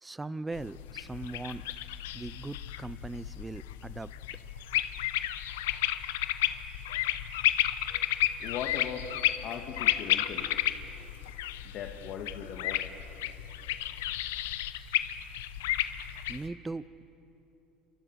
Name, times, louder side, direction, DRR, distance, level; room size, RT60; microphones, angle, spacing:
voice 1, 0.0-1.6 2.1-4.1 16.3-17.0, right 3 dB, 15° right, 17 dB, 0.7 m, -39 dB
sound 1, 0.5-16.5, left 13 dB, 85° left, 1.0 m, -32 dB
voice 2, 8.4-9.1 9.4-10.6 11.7-12.8, left 8 dB, 60° left, 3 dB, 2.0 m, -39 dB
28.5 x 24.0 x 6.4 m, 3.0 s
supercardioid pair, 90°, 0 cm